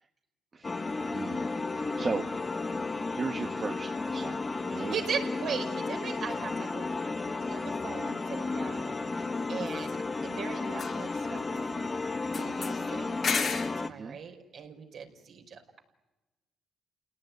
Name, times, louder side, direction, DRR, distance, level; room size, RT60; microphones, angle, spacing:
sound 1, 0.6-13.9, left 3 dB, 30° left, 1.1 m, -33 dB
voice 1, 1.1-2.3 3.1-4.9 13.9-14.2, right 4 dB, 40° right, 4 dB, 1.5 m, -36 dB
voice 2, 4.7-10.0 10.2-11.9 12.3-15.8, right 6 dB, 65° right, 2 dB, 5.0 m, -39 dB
sound 2, 6.3-6.5 9.7-10.4 10.7-11.8 12.3-13.9, left 5 dB, 55° left, 2.6 m, -36 dB
29.5 x 18.0 x 9.6 m, 1.1 s
supercardioid pair, 70°, 0 cm